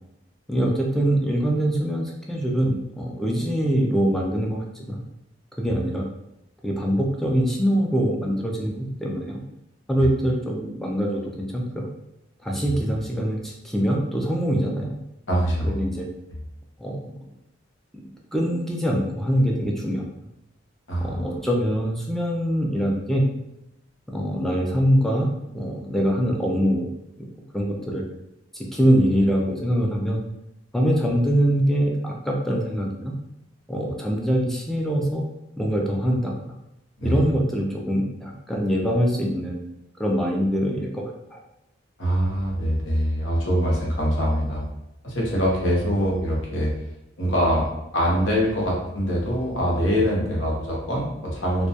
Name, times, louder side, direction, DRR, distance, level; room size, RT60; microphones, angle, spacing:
voice 1, 0.5-5.0 5.6-6.1 6.6-9.4 9.9-11.9 12.4-14.9 15.6-16.1 16.8-17.2 18.3-20.0 21.0-23.2 24.1-26.9 27.2-27.3 27.5-28.0 28.5-30.2 30.7-33.1 33.7-35.3 35.6-36.3 37.0-39.6 40.0-41.0 41.3-41.4, equal, ahead, -1 dB, 0.3 m, -23 dB
voice 2, 15.3-15.8 20.9-21.3 37.0-37.2 42.0-44.6 45.0-46.7 47.2-47.7 47.9-51.7, equal, 80° left, -3 dB, 0.8 m, -23 dB
2.2 x 2.1 x 2.7 m, 0.85 s
head